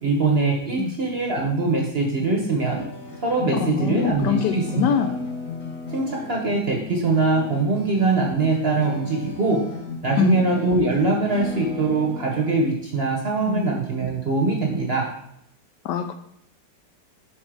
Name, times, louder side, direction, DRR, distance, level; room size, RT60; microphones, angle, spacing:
voice 1, 0.0-2.8 3.2-5.1 5.9-9.6 10.0-15.1, right 3 dB, 45° right, 0 dB, 0.9 m, -22 dB
sound 1, 2.6-12.6, left 3 dB, 50° left, 1.7 m, -35 dB
voice 2, 3.5-5.1 10.2-10.4 13.5-13.7 15.8-16.1, left 8 dB, 75° left, 8 dB, 1.1 m, -23 dB
6.4 x 4.0 x 4.6 m, 0.73 s
omnidirectional pair, 2.0 m